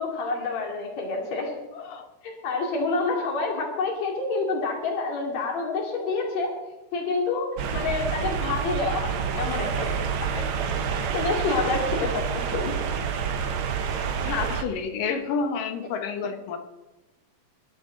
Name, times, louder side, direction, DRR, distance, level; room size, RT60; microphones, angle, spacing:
voice 1, 0.0-1.5 2.2-6.5 6.9-7.5 7.7-10.1 11.1-12.8, left 3 dB, 55° left, 0 dB, 3.8 m, -28 dB
voice 2, 1.7-2.1 10.3-10.5 14.2-16.6, left 5 dB, 85° left, 6 dB, 3.0 m, -30 dB
sound 1, 7.6-14.6, right 7 dB, 70° right, 1.3 m, -28 dB
22.5 x 11.5 x 3.9 m, 1.1 s
omnidirectional pair, 3.8 m